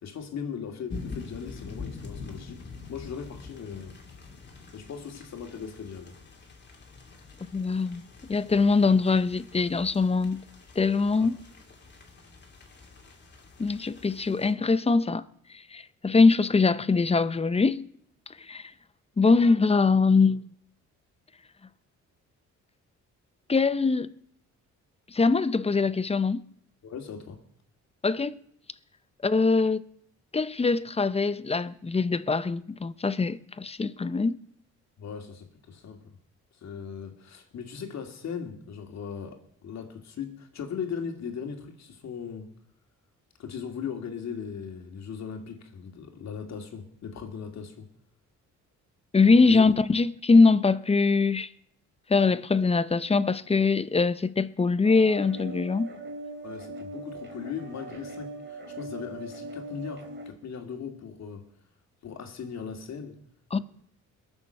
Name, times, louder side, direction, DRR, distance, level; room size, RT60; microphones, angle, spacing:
voice 1, 0.0-4.0 4.7-6.2 11.2-11.3 26.8-27.4 35.0-36.1 36.5-42.5 43.4-47.9 49.5-49.7 56.4-61.5 62.0-63.2, left 7 dB, 60° left, 2.6 m, -38 dB
sound 1, 0.9-14.5, left 4 dB, 35° left, 2.8 m, -45 dB
voice 2, 7.5-8.0 8.3-10.4 10.8-11.4 13.6-15.2 15.7-17.8 18.5-18.6 19.2-20.4 23.5-24.1 25.1-26.4 28.0-28.3 29.2-29.8 30.3-34.4 49.1-51.5 52.1-55.9 63.5-63.6, left 4 dB, 20° left, 0.7 m, -22 dB
sound 2, 54.8-60.3, right 2 dB, 40° right, 2.9 m, -41 dB
21.5 x 7.2 x 6.6 m
cardioid pair, 90°, 30 cm